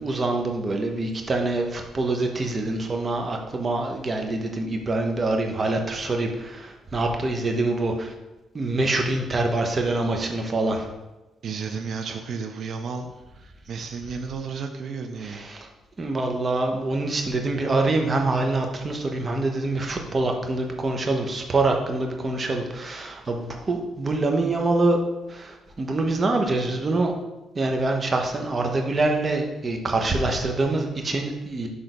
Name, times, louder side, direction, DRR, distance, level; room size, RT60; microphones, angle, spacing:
voice 1, 0.0-8.1 8.5-10.9 15.2-15.7 16.0-25.0 25.3-27.1 27.5-31.7, right 2 dB, 35° right, 3 dB, 1.2 m, -25 dB
voice 2, 11.4-15.5, right 5 dB, 60° right, 6 dB, 0.7 m, -33 dB
6.4 x 3.7 x 5.2 m, 1.1 s
cardioid pair, 90°, 0 cm